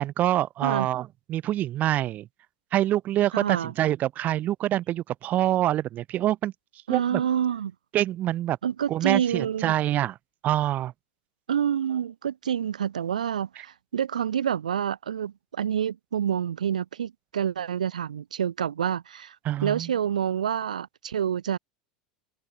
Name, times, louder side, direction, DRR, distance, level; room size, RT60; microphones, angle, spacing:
voice 1, 0.0-2.3 2.7-6.5 6.9-7.2 7.9-8.6 8.9-10.1 10.4-10.9 19.4-19.9, right 13 dB, 45° right, 2.5 m, -25 dB
voice 2, 3.3-3.7 6.9-7.7 8.6-9.7 11.5-19.3 19.6-21.6, right 9 dB, 80° right, 1.3 m, -28 dB
figure-of-eight pair, 80°, 4 cm